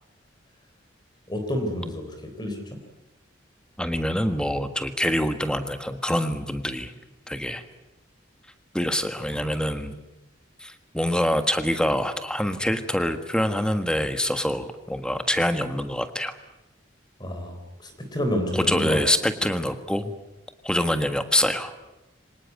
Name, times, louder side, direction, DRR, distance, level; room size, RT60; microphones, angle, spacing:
voice 1, 1.3-2.6 17.2-19.0, left 1 dB, 20° left, 5 dB, 3.7 m, -29 dB
voice 2, 3.8-6.9 7.3-7.6 8.7-10.0 10.6-16.3 18.5-20.1 20.6-21.7, equal, 5° left, 9 dB, 1.5 m, -25 dB
25.0 x 19.0 x 9.3 m, 0.99 s
head